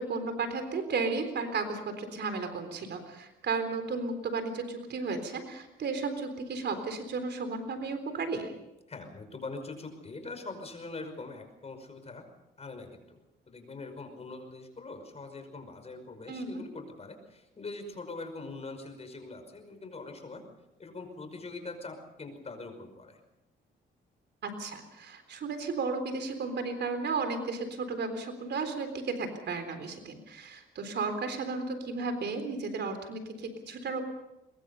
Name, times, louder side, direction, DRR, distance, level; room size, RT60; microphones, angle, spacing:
voice 1, 0.0-8.5 16.3-16.6 24.4-34.0, right 4 dB, 60° right, 8 dB, 3.8 m, -34 dB
voice 2, 8.9-12.3 12.6-20.4 20.8-23.2, left 3 dB, 30° left, 7 dB, 5.4 m, -43 dB
23.5 x 22.0 x 5.6 m, 0.91 s
cardioid pair, 90°, 20 cm